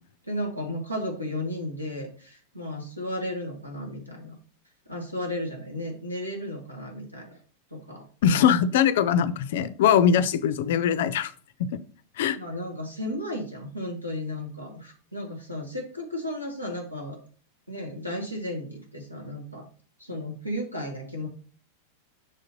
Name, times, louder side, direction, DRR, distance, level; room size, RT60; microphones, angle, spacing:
voice 1, 0.2-4.3 4.9-7.4 7.7-8.4 12.3-17.2 17.7-19.7 20.0-21.3, left 1 dB, 90° right, 2 dB, 1.4 m, -34 dB
voice 2, 8.2-11.3 11.7-11.8 12.2-12.4, left 8 dB, 55° left, 15 dB, 0.4 m, -21 dB
6.2 x 3.9 x 4.0 m, 0.41 s
figure-of-eight pair, 90°, 0 cm